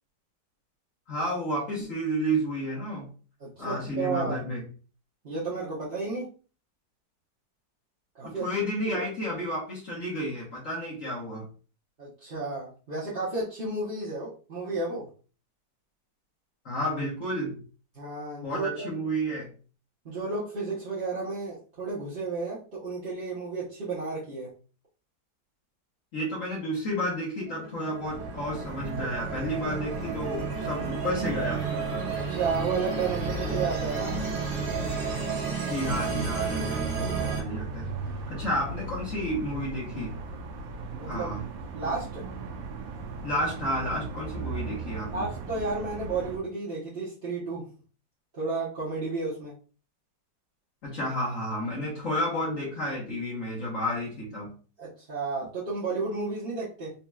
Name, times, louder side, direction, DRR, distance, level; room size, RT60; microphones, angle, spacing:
voice 1, 1.1-3.1 3.6-4.6 8.2-11.5 16.6-17.6 18.4-19.5 26.1-32.1 35.6-37.9 38.3-40.2 41.0-41.4 43.2-45.3 50.8-54.5, equal, 50° left, -5 dB, 1.3 m, -31 dB
voice 2, 3.4-4.5 5.2-6.3 8.1-8.4 8.9-9.0 12.0-15.1 17.9-18.8 20.0-24.5 32.3-34.2 37.2-37.6 40.9-41.3 41.7-42.2 45.1-47.7 48.3-49.5 54.8-56.9, right 3 dB, 35° right, -9 dB, 1.0 m, -32 dB
sound 1, 27.4-37.4, right 6 dB, 60° right, 1.8 m, -33 dB
sound 2, 28.0-46.4, right 2 dB, 85° right, 1.5 m, -37 dB
4.3 x 2.8 x 2.3 m, 0.38 s
omnidirectional pair, 2.1 m